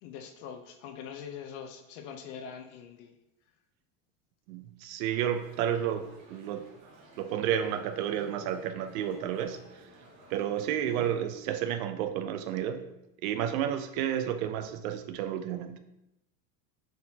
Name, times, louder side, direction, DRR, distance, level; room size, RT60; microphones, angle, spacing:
voice 1, 0.0-3.1 10.8-11.1, left 7 dB, 60° left, 5 dB, 0.6 m, -43 dB
voice 2, 4.5-6.7 7.2-9.9 10.3-12.8 13.2-15.8, right 9 dB, 70° right, 9 dB, 0.6 m, -31 dB
sound 1, 5.0-11.2, right 1 dB, 40° right, 1.0 m, -56 dB
4.1 x 3.9 x 2.8 m, 0.87 s
supercardioid pair, 160°, 43 cm